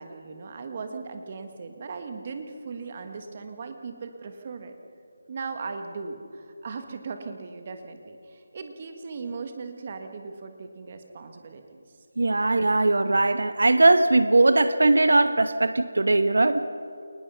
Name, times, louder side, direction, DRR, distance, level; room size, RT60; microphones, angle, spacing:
voice 1, 0.0-4.7 5.3-11.8, right 4 dB, 25° right, 6 dB, 1.5 m, -38 dB
voice 2, 12.2-16.6, right 2 dB, 80° right, 11 dB, 1.1 m, -20 dB
27.5 x 19.5 x 5.7 m, 2.5 s
figure-of-eight pair, 175°, 0 cm